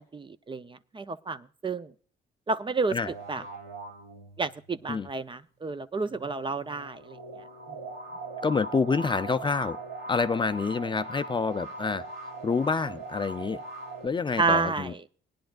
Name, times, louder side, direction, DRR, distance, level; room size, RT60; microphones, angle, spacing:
voice 1, 0.0-1.9 2.5-3.0 3.3-3.4 4.4-7.2 14.4-15.0, right 4 dB, 25° right, 13 dB, 0.5 m, -30 dB
voice 2, 2.9-3.5 4.9-5.1 8.4-9.8 10.1-12.1 12.4-13.6 14.0-14.9, left 4 dB, 25° left, 11 dB, 0.4 m, -28 dB
sound 1, 3.0-4.7 6.0-14.1, right 3 dB, 80° right, 2.8 m, -40 dB
19.0 x 10.0 x 2.4 m, 0.43 s
cardioid pair, 90°, 20 cm